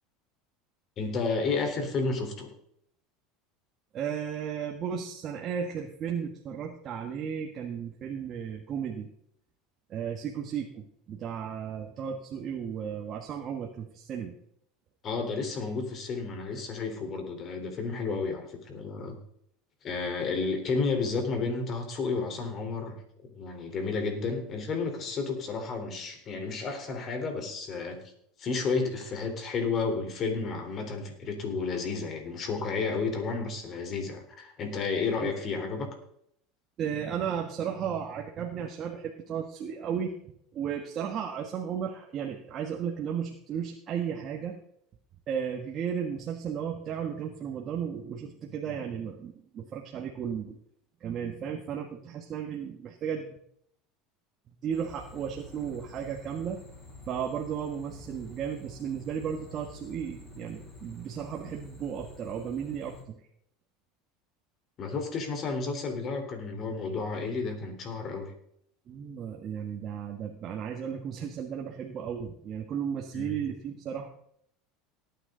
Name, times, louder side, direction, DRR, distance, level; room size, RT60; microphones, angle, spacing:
voice 1, 1.0-2.5 15.0-19.2 19.8-28.0 28.4-35.9 64.8-68.3 73.1-73.4, left 4 dB, 40° left, 5 dB, 3.8 m, -32 dB
voice 2, 3.9-9.1 9.9-14.3 35.2-35.3 36.8-44.6 45.3-50.6 51.0-53.4 54.6-56.6 57.1-63.3 68.9-74.1, right 8 dB, 40° right, 1 dB, 1.5 m, -34 dB
sound 1, 54.7-63.0, left 2 dB, 25° left, 5.5 m, -49 dB
18.5 x 9.3 x 3.9 m, 0.71 s
supercardioid pair, 105°, 0 cm